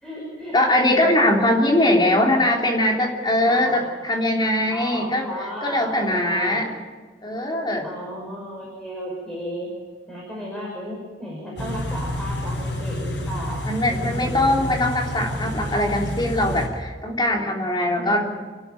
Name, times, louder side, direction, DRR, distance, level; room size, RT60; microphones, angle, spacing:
voice 1, 0.0-1.1 1.9-2.5 3.4-3.9 4.7-6.7 7.8-9.7 10.1-14.7 18.0-18.4, equal, 5° left, -4 dB, 5.9 m, -34 dB
voice 2, 0.5-5.3 5.6-6.7 7.2-7.9 13.6-18.3, left 1 dB, 25° left, 0 dB, 3.1 m, -21 dB
Car / Idling, 11.6-16.7, left 1 dB, 75° left, 7.3 m, -29 dB
28.0 x 12.5 x 9.2 m, 1.4 s
head